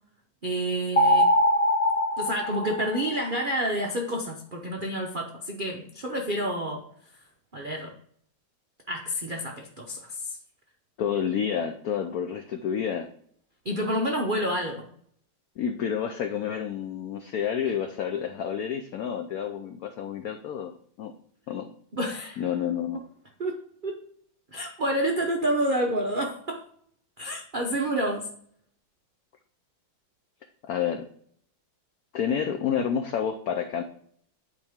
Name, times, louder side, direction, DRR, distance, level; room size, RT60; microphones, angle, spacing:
voice 1, 0.4-1.3 2.2-6.8 7.5-7.9 8.9-10.4 13.6-14.9 21.9-22.4 23.4-23.6 23.8-24.0 24.5-26.6 27.2-28.3, right 1 dB, 70° right, 1 dB, 0.4 m, -29 dB
sound 1, 1.0-3.4, equal, 55° left, 0.6 m, -22 dB
voice 2, 11.0-13.1 15.6-20.7 21.0-21.1 21.5-21.7 22.4-23.0 30.7-31.0 32.1-33.8, left 8 dB, 85° left, 7 dB, 0.8 m, -29 dB
9.9 x 4.3 x 3.5 m, 0.63 s
omnidirectional pair, 2.2 m